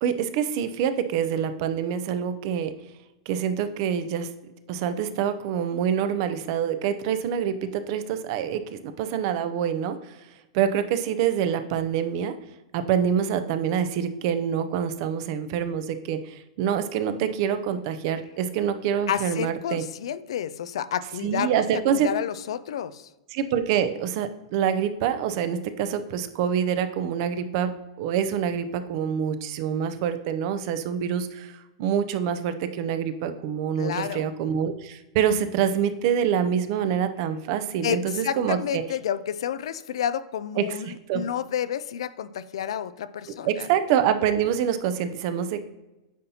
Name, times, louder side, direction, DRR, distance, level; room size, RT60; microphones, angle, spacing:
voice 1, 0.0-2.7 3.3-4.3 4.7-10.2 10.5-12.3 12.7-19.8 21.2-22.1 23.3-27.7 28.0-38.8 40.6-41.2 43.4-45.7, right 8 dB, 55° right, 10 dB, 0.6 m, -26 dB
voice 2, 19.1-21.6 21.9-23.1 33.8-34.2 37.8-43.7, left 9 dB, 75° left, 15 dB, 0.4 m, -30 dB
9.2 x 4.1 x 2.8 m, 1.0 s
hypercardioid pair, 115°, 3 cm